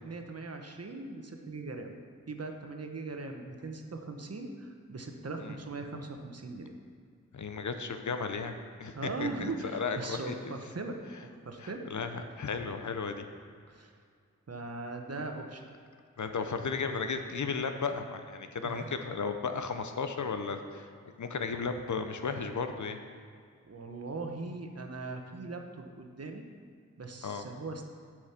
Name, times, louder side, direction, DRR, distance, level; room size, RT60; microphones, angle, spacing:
voice 1, 0.0-1.9 2.3-6.7 8.9-11.0 11.4-11.8 13.7-13.9 14.5-15.6 18.6-18.9 23.7-26.4 27.0-27.9, right 3 dB, 50° right, 3 dB, 1.2 m, -40 dB
voice 2, 7.3-10.5 11.6-13.2 16.2-20.9 21.2-23.0 27.2-27.5, left 5 dB, 70° left, 7 dB, 0.8 m, -35 dB
8.2 x 6.3 x 5.9 m, 2.2 s
cardioid pair, 55°, 31 cm